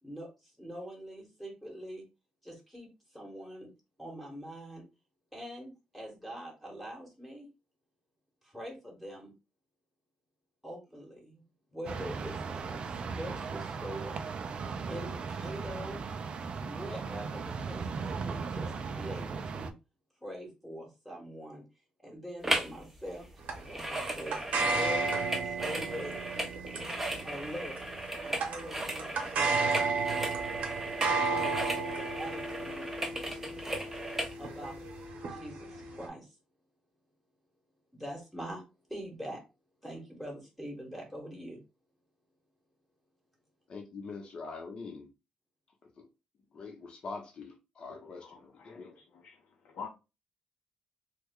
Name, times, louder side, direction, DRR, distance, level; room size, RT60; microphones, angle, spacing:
voice 1, 0.0-2.1 2.4-2.9 3.1-3.7 4.0-4.8 5.3-7.5 8.4-9.3 10.6-11.4 11.7-12.9 13.1-14.2 14.9-16.0 16.6-19.7 20.2-21.6 22.0-23.3 23.7-24.4 24.7-26.3 27.2-27.8 28.2-29.9 31.2-32.9 34.4-34.8 35.2-36.4 37.9-38.6 38.9-39.4 39.8-41.6, equal, 5° left, -1 dB, 1.0 m, -43 dB
sound 1, 11.8-19.7, right 5 dB, 45° right, 0.3 m, -37 dB
sound 2, 22.4-22.8 23.1-34.4 34.9-35.0, right 1 dB, 10° right, 0.6 m, -36 dB
sound 3, 23.5-36.1, right 3 dB, 75° right, 0.9 m, -33 dB
voice 2, 43.7-45.1 46.0-46.1 46.5-48.9, left 4 dB, 45° left, 1 dB, 0.7 m, -44 dB
voice 3, 47.9-49.4 49.6-49.9, left 6 dB, 85° left, 0 dB, 0.7 m, -47 dB
3.1 x 2.2 x 3.5 m, 0.28 s
cardioid pair, 140°, 2 cm